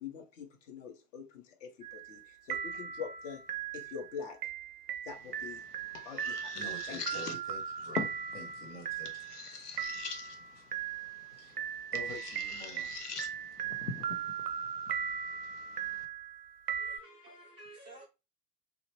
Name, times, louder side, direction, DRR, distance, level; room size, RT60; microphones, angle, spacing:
voice 1, 0.0-3.4 3.7-4.4 5.0-5.6 6.0-7.2, left 6 dB, 50° left, 0.9 m, -44 dB
sound 1, 1.8-2.2 2.5-17.0, right 8 dB, 70° right, 0.7 m, -38 dB
sound 2, 5.1-16.1, left 5 dB, 75° left, 0.8 m, -44 dB
voice 2, 6.5-9.2 9.5-9.6 11.4-11.6 11.9-13.0, left 2 dB, 20° left, 1.0 m, -47 dB
voice 3, 16.7-18.1, right 2 dB, 10° right, 0.4 m, -52 dB
3.0 x 2.4 x 3.1 m
figure-of-eight pair, 90°, 48 cm